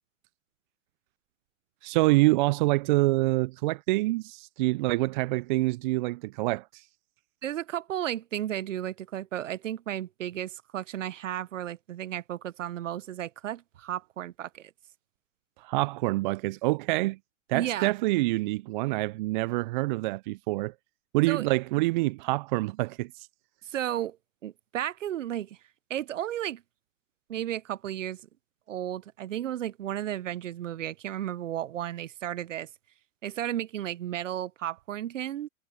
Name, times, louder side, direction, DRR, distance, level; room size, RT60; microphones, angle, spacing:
voice 1, 1.8-6.8 15.6-17.2 17.5-20.7 21.1-23.3, right 21 dB, 40° right, 0.5 m, -26 dB
voice 2, 7.4-14.7 17.5-17.9 21.3-21.5 23.6-24.2 24.4-25.6 25.9-26.6 27.3-28.2 28.7-32.7 33.2-35.5, right 11 dB, 70° right, 1.1 m, -33 dB
hypercardioid pair, 110°, 39 cm